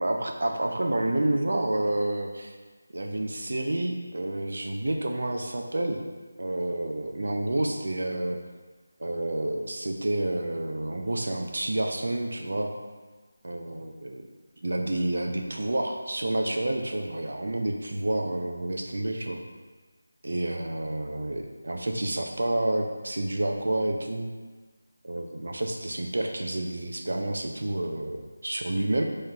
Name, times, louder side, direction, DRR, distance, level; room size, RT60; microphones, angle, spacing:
voice 1, 0.0-2.6 2.9-6.0 6.4-8.4 9.0-12.7 13.4-14.2 14.6-19.4 20.2-24.3 25.0-29.0, right 1 dB, 70° right, 3 dB, 0.5 m, -29 dB
5.6 x 3.1 x 2.3 m, 1.4 s
figure-of-eight pair, 170°, 0 cm